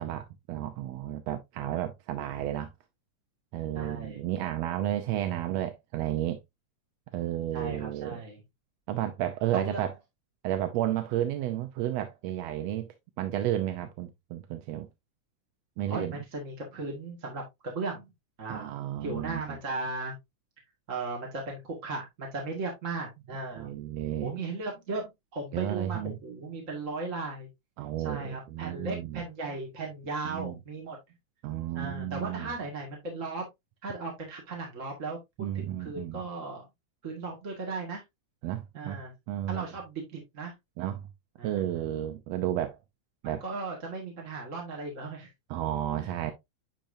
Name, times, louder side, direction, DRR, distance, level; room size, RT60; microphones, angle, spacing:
voice 1, 0.0-2.7 3.5-6.4 7.1-8.2 8.9-9.9 10.4-12.9 13.2-14.9 15.8-16.2 18.5-19.6 23.6-24.3 25.5-26.2 27.8-29.2 30.2-30.5 31.4-32.5 35.4-36.2 38.4-39.0 39.3-39.6 40.8-41.1 41.4-42.8 43.2-43.4 45.5-46.3, right 12 dB, 70° right, 1.7 m, -32 dB
voice 2, 3.7-4.2 7.5-8.4 9.5-9.9 15.9-18.1 18.4-18.7 19.0-20.1 20.9-23.7 24.2-27.5 28.0-31.0 31.7-33.4 33.8-35.2 35.5-36.6 37.0-38.0 38.7-39.1 39.5-40.5 41.4-41.6 43.2-45.3 46.0-46.1, right 3 dB, 30° right, 1.7 m, -36 dB
10.0 x 4.4 x 2.6 m
omnidirectional pair, 3.5 m